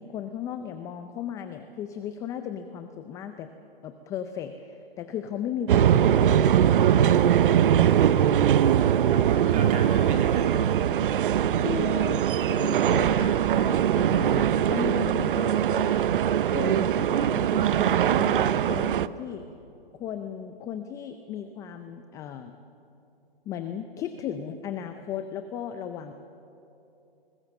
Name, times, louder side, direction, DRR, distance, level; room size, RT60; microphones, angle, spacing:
voice 1, 0.0-3.5 3.8-6.5 6.9-7.3 11.6-12.2 12.5-16.1 16.5-19.4 20.0-22.6 23.5-26.1, left 9 dB, 10° left, 8 dB, 0.4 m, -36 dB
sound 1, 5.7-19.1, right 10 dB, 60° right, 0.7 m, -22 dB
voice 2, 8.6-10.6 10.9-11.2, right 4 dB, 25° right, 3 dB, 2.8 m, -36 dB
22.5 x 19.5 x 7.5 m, 2.8 s
hypercardioid pair, 135°, 30 cm